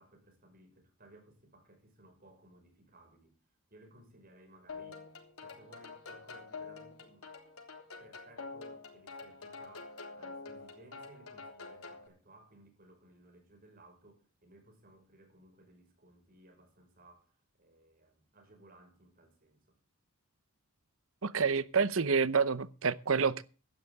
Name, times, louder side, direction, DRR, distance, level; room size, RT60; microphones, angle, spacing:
voice 1, 0.0-3.4 3.7-5.1 5.4-7.3 8.0-19.8, right 1 dB, 40° right, 5.5 m, -60 dB
sound 1, 4.7-12.1, left 4 dB, 80° left, 3.6 m, -47 dB
voice 2, 21.2-23.4, right 5 dB, 65° right, 0.8 m, -28 dB
16.5 x 12.5 x 3.6 m
head